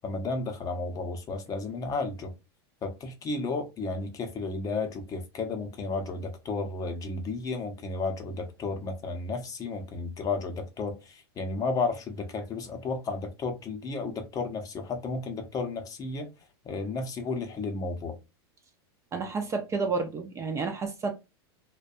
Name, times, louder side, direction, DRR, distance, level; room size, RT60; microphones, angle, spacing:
voice 1, 0.0-2.3 2.8-16.3 16.6-18.2, left 3 dB, 25° left, 0.6 m, -33 dB
voice 2, 19.1-21.1, right 4 dB, 20° right, 0.4 m, -30 dB
2.6 x 2.2 x 2.4 m
supercardioid pair, 125°, 14 cm